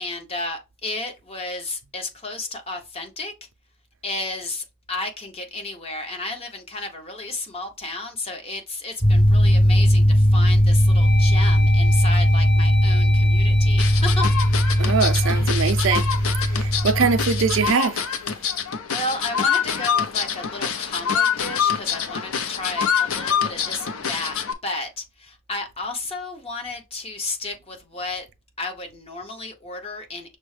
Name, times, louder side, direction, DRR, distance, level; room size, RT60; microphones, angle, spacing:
voice 1, 0.0-3.3 4.0-14.3 18.3-18.6 18.9-24.4 24.6-28.3 28.6-30.4, left 2 dB, 25° left, 0.9 m, -33 dB
sound 1, 9.0-17.7, equal, 5° left, 0.5 m, -18 dB
sound 2, 9.6-10.1 10.6-16.7, left 2 dB, 55° left, 1.7 m, -35 dB
sound 3, 13.8-24.5, left 7 dB, 75° left, 0.6 m, -26 dB
voice 2, 14.8-16.1 16.5-18.0, right 6 dB, 60° right, 0.4 m, -22 dB
6.0 x 2.1 x 3.2 m
head